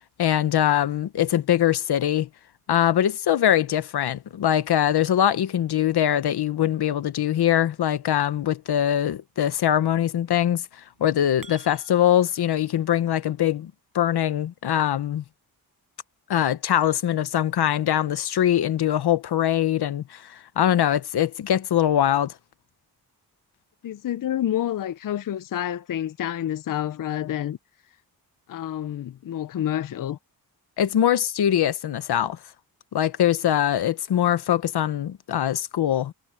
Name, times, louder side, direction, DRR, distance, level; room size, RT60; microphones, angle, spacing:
voice 1, 0.2-2.3 2.7-10.6 11.0-15.2 16.3-22.3 30.8-32.4 32.9-36.1, left 11 dB, 90° left, 1.1 m, -22 dB
sound 1, 10.9-12.4, right 4 dB, 60° right, 7.8 m, -48 dB
voice 2, 23.8-27.6 28.5-30.2, left 11 dB, 55° left, 0.6 m, -28 dB
cardioid pair, 80°, 38 cm